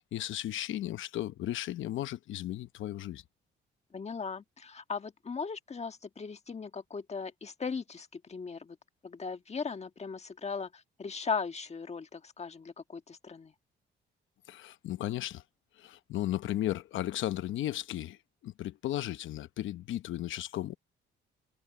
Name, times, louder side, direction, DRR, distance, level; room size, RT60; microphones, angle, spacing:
voice 1, 0.0-3.2 14.5-15.4 15.8-18.2 18.4-20.8, left 13 dB, 75° left, 1.0 m, -35 dB
voice 2, 3.9-8.8 9.0-13.5, left 5 dB, 35° left, 1.6 m, -38 dB
cardioid pair, 90°, 20 cm